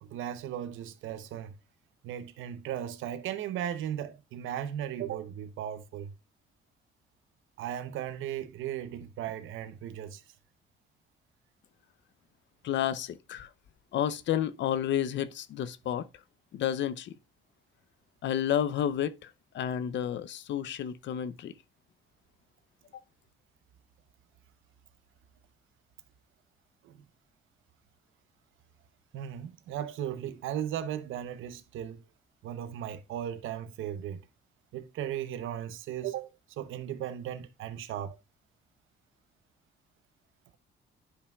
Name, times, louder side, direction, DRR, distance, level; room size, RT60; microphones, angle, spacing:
voice 1, 0.0-1.5 2.0-6.1 7.6-10.2 26.8-27.0 29.1-32.0 32.4-34.2 34.7-36.3 36.6-38.2, right 10 dB, 85° right, 0.8 m, -36 dB
voice 2, 12.6-13.5 13.9-16.1 16.5-17.1 18.2-21.5, left 10 dB, 70° left, 0.6 m, -31 dB
10.0 x 5.6 x 2.3 m
cardioid pair, 90°, 20 cm